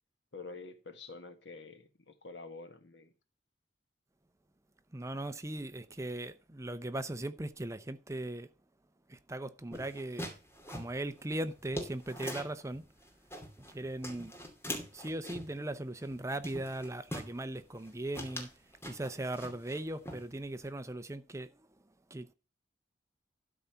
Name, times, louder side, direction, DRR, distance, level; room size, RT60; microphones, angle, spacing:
voice 1, 0.3-3.1, left 3 dB, 75° left, 1.5 m, -48 dB
voice 2, 4.9-8.5 9.1-10.3 10.7-12.9 13.7-14.3 14.9-18.5 18.8-21.7 22.1-22.3, right 1 dB, 15° right, 0.6 m, -39 dB
sound 1, 9.7-12.6 13.0-13.7 14.0-15.6 16.0-16.2 16.4-17.3 17.7-17.9 18.1-19.8 20.1-20.7, equal, 15° left, 2.5 m, -43 dB
12.5 x 4.2 x 6.8 m
head